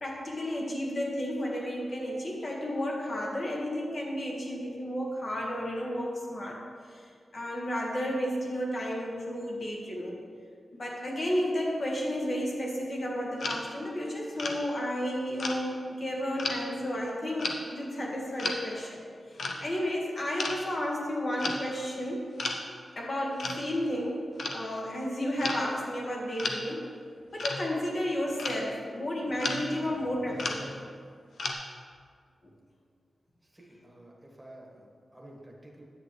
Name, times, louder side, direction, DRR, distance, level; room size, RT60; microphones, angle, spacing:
voice 1, 0.0-6.6 6.9-7.1 7.3-10.2 10.7-19.0 19.6-22.3 22.9-26.9 27.3-30.7, equal, 45° left, -2 dB, 1.6 m, -32 dB
sound 1, 13.4-13.6 14.4-14.6 15.4-15.6 16.4-16.6 17.4-17.6 18.4-18.6 19.4-19.6 20.4-20.6 21.4-21.6 22.4-22.6 23.4-23.6 24.4-24.6 25.4-25.6 26.4-26.6 27.4-27.7 28.4-28.6 29.4-29.7 30.2-30.9 31.4-31.5, left 3 dB, 65° left, 0.8 m, -33 dB
voice 2, 33.4-35.8, right 1 dB, 15° right, -2 dB, 1.5 m, -51 dB
10.0 x 8.3 x 3.2 m, 2.1 s
wide cardioid pair, 140°, 0 cm